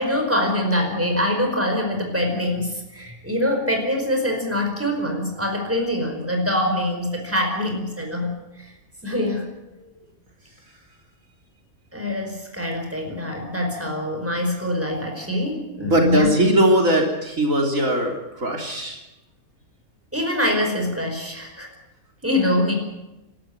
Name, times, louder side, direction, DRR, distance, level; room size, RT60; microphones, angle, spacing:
voice 1, 0.0-8.7 9.0-9.5 11.9-16.4 20.1-21.7 22.2-22.7, left 1 dB, 10° right, 3 dB, 4.8 m, -24 dB
voice 2, 15.8-19.0, right 1 dB, 65° right, 1 dB, 3.8 m, -20 dB
27.5 x 13.0 x 9.4 m, 0.97 s
omnidirectional pair, 1.5 m